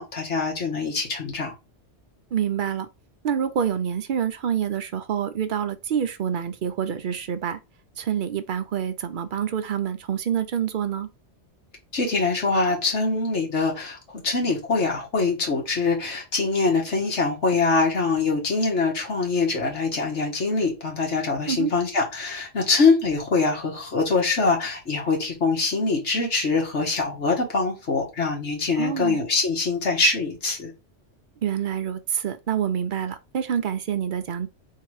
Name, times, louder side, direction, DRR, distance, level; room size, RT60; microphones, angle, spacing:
voice 1, 0.0-1.5 11.9-30.7, left 3 dB, 80° left, 1.8 m, -24 dB
voice 2, 2.3-2.9 3.2-7.6 8.0-11.1 21.5-21.7 28.8-29.2 31.4-34.5, right 8 dB, 60° right, 0.6 m, -27 dB
3.7 x 2.8 x 4.6 m
omnidirectional pair, 1.2 m